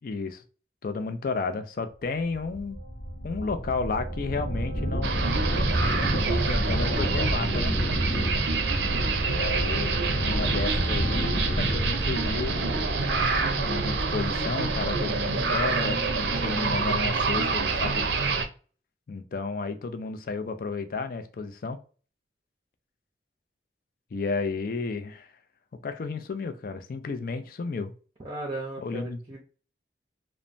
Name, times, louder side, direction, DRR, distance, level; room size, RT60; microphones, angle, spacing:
voice 1, 0.0-0.4 0.8-2.8 3.2-5.4 6.3-7.7 9.2-11.3 11.5-12.6 13.6-18.1 19.1-21.8 24.1-25.3 25.8-27.9 28.8-29.2, left 4 dB, 50° left, 0.4 m, -32 dB
sound 1, 2.3-14.3, equal, 70° left, 0.8 m, -30 dB
sound 2, 5.0-18.4, right 4 dB, 80° right, 0.5 m, -27 dB
Marimba xylophone, 12.4-18.0, left 1 dB, 35° left, 0.8 m, -40 dB
voice 2, 28.2-29.5, right 2 dB, 25° right, 0.6 m, -37 dB
3.1 x 2.1 x 2.5 m
head